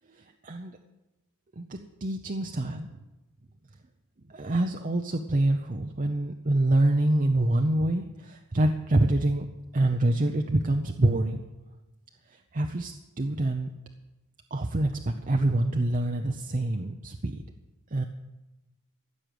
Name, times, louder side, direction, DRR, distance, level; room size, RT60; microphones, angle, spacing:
voice 1, 0.2-0.8 1.6-2.9 4.3-9.5 9.7-11.4 12.3-13.7 14.5-17.4 17.9-18.0, right 1 dB, 35° right, 4 dB, 0.8 m, -26 dB
15.0 x 6.5 x 9.3 m, 1.1 s
head